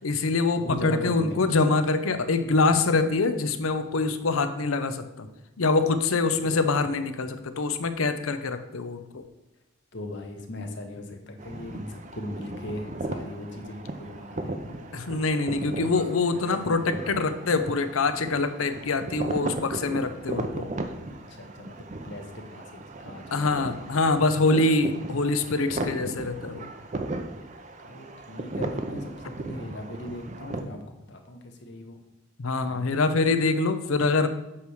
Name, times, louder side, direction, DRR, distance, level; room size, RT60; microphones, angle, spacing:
voice 1, 0.0-5.3 5.6-9.2 14.9-20.6 23.3-26.7 32.4-34.3, left 3 dB, 80° left, 10 dB, 0.6 m, -25 dB
voice 2, 0.6-1.5 6.4-6.7 9.9-14.8 15.1-15.9 16.3-17.1 21.1-23.8 27.8-32.0 32.6-33.0, left 1 dB, 55° left, 4 dB, 1.0 m, -39 dB
sound 1, 11.4-30.6, right 2 dB, 35° right, 0.5 m, -36 dB
8.5 x 3.2 x 6.2 m, 0.96 s
head